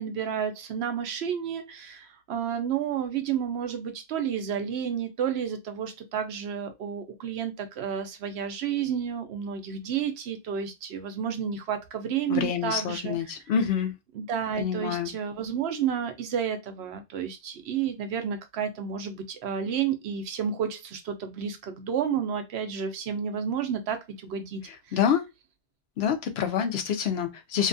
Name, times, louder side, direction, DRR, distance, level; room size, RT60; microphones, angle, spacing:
voice 1, 0.0-13.4 14.1-24.6 24.9-25.0, right 8 dB, 90° right, 0.9 m, -31 dB
voice 2, 12.3-13.9 14.6-15.1 24.9-25.2 26.0-27.7, left 8 dB, 85° left, 0.8 m, -27 dB
2.7 x 2.3 x 2.5 m
omnidirectional pair, 1.1 m